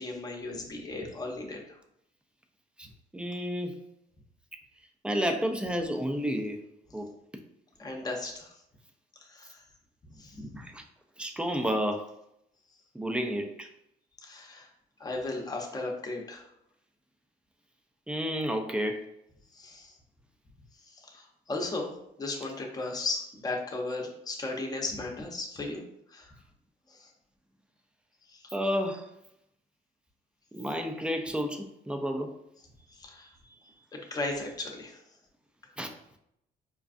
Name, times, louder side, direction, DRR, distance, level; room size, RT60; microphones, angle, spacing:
voice 1, 0.0-1.6 7.8-8.6 9.2-9.6 10.1-10.5 14.2-14.7 15.0-16.5 19.5-20.0 20.8-21.9 22.2-25.8 26.1-26.3 26.9-27.1 28.3-28.6 32.9-33.5 33.9-35.0, left 2 dB, 20° left, 1 dB, 0.8 m, -36 dB
voice 2, 3.1-3.8 5.0-6.6 6.9-7.1 10.6-10.8 11.2-12.1 12.9-13.7 18.1-19.1 28.5-29.1 30.5-32.3 35.8-35.9, equal, 5° right, 4 dB, 0.4 m, -31 dB
5.0 x 2.3 x 2.5 m, 0.77 s
cardioid pair, 110°, 17 cm